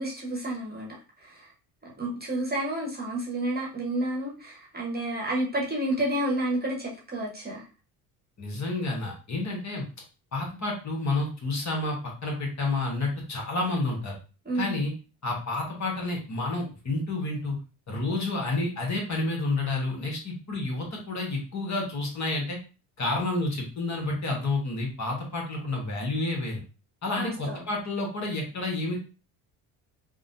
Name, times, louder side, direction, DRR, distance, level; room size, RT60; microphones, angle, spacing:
voice 1, 0.0-1.5 1.8-7.6 14.4-14.8 27.2-27.6, right 1 dB, 20° right, -2 dB, 1.1 m, -30 dB
voice 2, 8.4-9.8 10.3-12.0 12.2-14.2 14.5-14.9 15.2-17.6 17.9-22.6 23.0-26.6 27.0-29.0, left 2 dB, 35° left, 0 dB, 1.3 m, -29 dB
3.5 x 2.1 x 2.6 m, 0.35 s
supercardioid pair, 70°, 46 cm